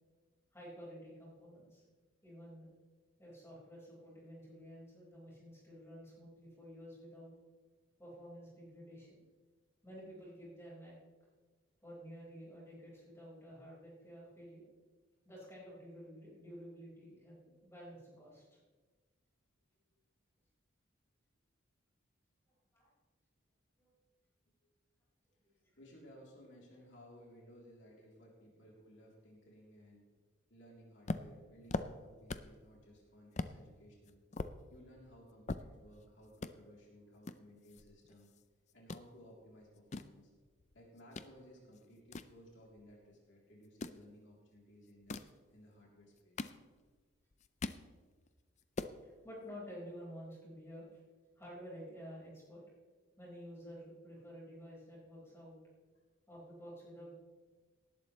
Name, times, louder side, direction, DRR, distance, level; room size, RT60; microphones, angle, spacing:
voice 1, 0.5-1.8 2.2-2.7 3.2-7.3 8.0-9.2 9.8-10.9 11.8-14.7 15.2-18.6 22.7-22.9 23.8-23.9 25.6-25.8 49.0-51.0 51.4-52.6 53.2-55.5 56.3-57.1, equal, 15° left, -6 dB, 5.0 m, -51 dB
voice 2, 25.8-30.1 30.5-34.2 34.7-38.3 38.7-40.3 40.7-46.5, equal, 65° left, -2 dB, 3.3 m, -59 dB
sound 1, 31.1-32.6 33.0-33.1 33.4-33.6 34.0-36.0 36.3-36.5 37.2-38.4 38.7-39.1 39.6-41.3 41.7-43.0 43.6-44.0 44.9-45.4 46.0-47.0 47.3-47.9 48.3-48.4 48.6-49.0, left 3 dB, 35° left, 0.5 m, -42 dB
18.5 x 12.0 x 3.2 m, 1.4 s
head